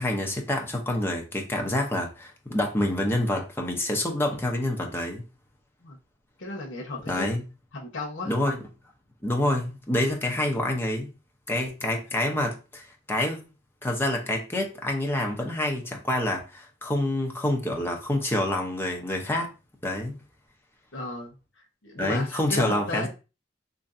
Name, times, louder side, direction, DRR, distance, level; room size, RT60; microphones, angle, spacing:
voice 1, 0.0-5.2 7.1-7.4 8.3-8.6 9.2-11.1 11.5-13.4 13.8-19.5 19.8-20.1 22.0-23.1, left 1 dB, 10° left, 0.6 m, -27 dB
voice 2, 6.4-7.3 7.7-8.3 20.9-21.3 21.8-23.1, left 2 dB, 85° left, 0.9 m, -34 dB
3.1 x 2.6 x 2.5 m
head